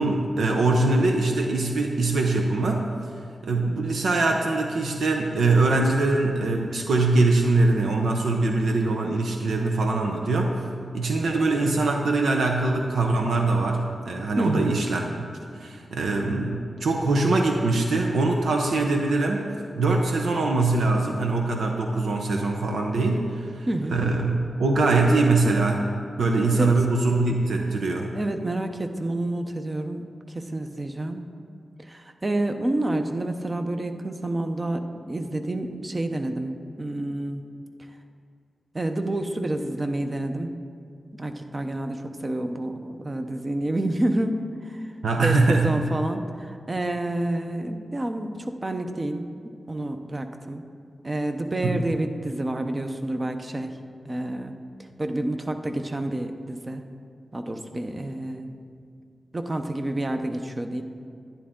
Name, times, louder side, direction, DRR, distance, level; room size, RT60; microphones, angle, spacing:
voice 1, 0.0-2.9 3.4-10.6 10.9-15.3 15.5-19.5 19.8-25.9 26.2-28.1 45.0-45.8 51.6-51.8, right 3 dB, 90° right, 2 dB, 0.8 m, -23 dB
voice 2, 14.4-14.8 23.7-24.0 26.5-26.7 28.1-31.3 31.8-37.4 38.7-40.6 41.2-44.8 45.2-49.3 49.7-50.6 51.0-53.7 54.0-54.6 55.0-56.8 57.3-58.6 59.3-60.8, right 1 dB, 25° right, 6 dB, 0.7 m, -29 dB
11.0 x 10.5 x 3.7 m, 2.3 s
wide cardioid pair, 90°, 0 cm